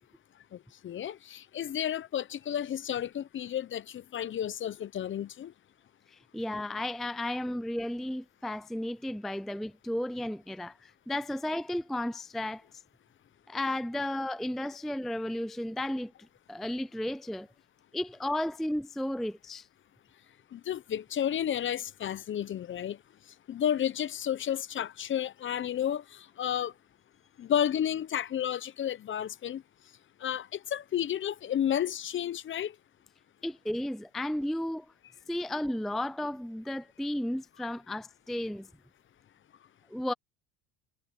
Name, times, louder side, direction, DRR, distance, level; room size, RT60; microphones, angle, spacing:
voice 1, 0.8-5.5 20.5-23.0 23.5-26.7 27.4-29.6 30.2-32.7, left 10 dB, 35° left, 0.9 m, -32 dB
voice 2, 6.1-12.8 13.5-16.1 16.5-17.5 17.9-19.7 33.4-34.9 35.3-38.7 39.9-40.1, left 1 dB, ahead, 0.5 m, -33 dB
supercardioid pair, 100°, 36 cm